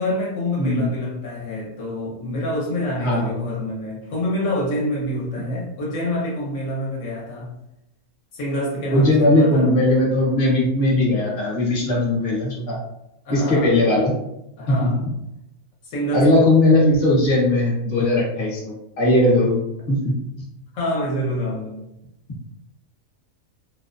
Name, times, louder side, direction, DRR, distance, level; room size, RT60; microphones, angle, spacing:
voice 1, 0.0-7.6 8.3-9.7 13.3-13.8 14.6-15.0 15.8-16.3 20.7-21.8, left 1 dB, 70° left, -3 dB, 1.1 m, -26 dB
voice 2, 3.0-3.4 8.9-12.8 13.3-14.1 14.7-15.1 16.1-19.6 19.9-20.1, left 1 dB, 40° left, -4 dB, 0.8 m, -18 dB
2.6 x 2.0 x 2.4 m, 0.85 s
omnidirectional pair, 1.5 m